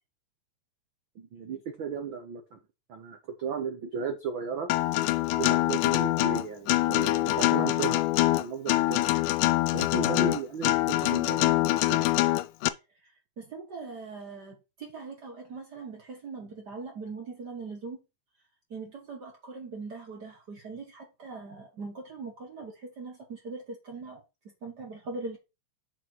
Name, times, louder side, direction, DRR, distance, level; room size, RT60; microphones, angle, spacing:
voice 1, 1.2-2.6 2.9-4.7 5.4-8.1 8.4-9.1 9.7-12.1, right 6 dB, 85° right, 1.0 m, -35 dB
Acoustic guitar, 4.7-12.7, left 18 dB, 85° left, 2.1 m, -24 dB
voice 2, 13.0-18.0 18.7-24.2 24.6-25.4, right 4 dB, 50° right, 1.2 m, -41 dB
6.9 x 4.1 x 6.1 m
omnidirectional pair, 3.8 m